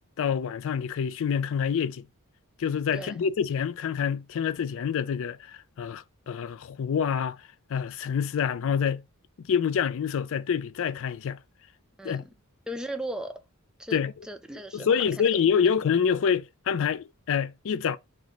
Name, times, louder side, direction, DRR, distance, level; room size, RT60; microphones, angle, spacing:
voice 1, 0.2-2.1 2.6-7.4 7.7-9.0 9.5-11.4 12.0-12.3 13.9-14.1 14.7-18.0, left 7 dB, 65° left, 0.4 m, -27 dB
voice 2, 12.0-12.3 12.7-13.4 13.8-15.3, right 1 dB, 5° right, 0.4 m, -37 dB
3.0 x 3.0 x 4.0 m
head